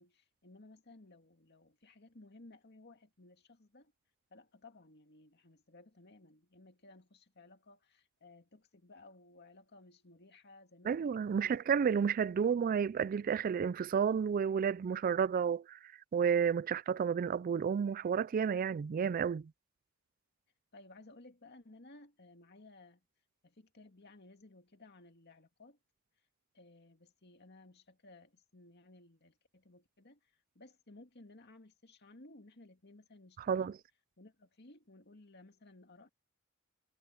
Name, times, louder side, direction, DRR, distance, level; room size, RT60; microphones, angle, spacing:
voice 1, 0.0-3.9 4.3-11.7 12.3-12.4 20.7-23.0 23.4-25.8 26.5-33.7 34.2-36.1, left 2 dB, 55° left, 2.3 m, -58 dB
voice 2, 10.9-15.8 16.1-19.5 33.5-33.7, right 7 dB, 45° right, 0.3 m, -31 dB
head